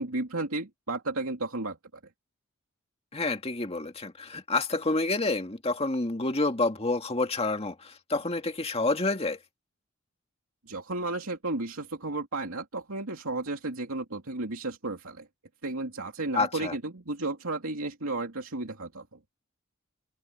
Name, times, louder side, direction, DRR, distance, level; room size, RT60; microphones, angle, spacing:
voice 1, 0.0-1.8 10.7-15.3 15.6-19.1, right 2 dB, 85° right, 2.7 m, -33 dB
voice 2, 3.1-9.4 16.3-16.7, left 3 dB, 30° left, 2.0 m, -28 dB
head